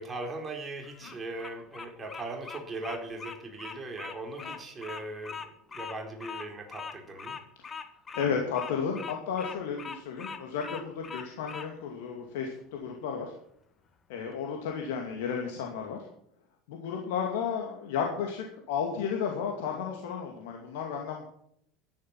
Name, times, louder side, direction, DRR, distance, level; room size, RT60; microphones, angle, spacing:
voice 1, 0.0-7.4, right 2 dB, 20° right, 3 dB, 4.3 m, -39 dB
Bird vocalization bird call bird song, 0.8-11.7, left 5 dB, 25° left, 1.8 m, -41 dB
voice 2, 8.1-13.3 14.1-16.0 16.7-21.2, left 6 dB, 65° left, 1 dB, 2.3 m, -33 dB
13.0 x 11.5 x 6.0 m, 0.71 s
figure-of-eight pair, 70°, 0 cm